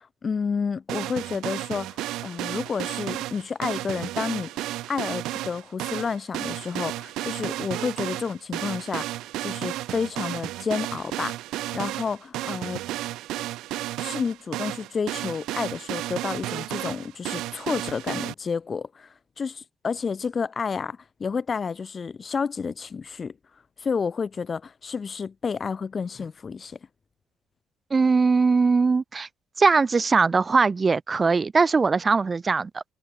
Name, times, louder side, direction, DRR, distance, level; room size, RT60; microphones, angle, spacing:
voice 1, 0.0-4.5 4.9-9.1 9.4-11.4 11.7-12.8 13.4-13.5 14.0-19.1 19.4-23.3 23.8-26.8, left 5 dB, 35° left, 0.6 m, -30 dB
sound 1, 0.9-18.3, right 15 dB, 85° right, 0.6 m, -33 dB
voice 2, 27.9-29.3 29.6-32.8, right 4 dB, 30° right, 0.3 m, -21 dB
cardioid pair, 110°, 0 cm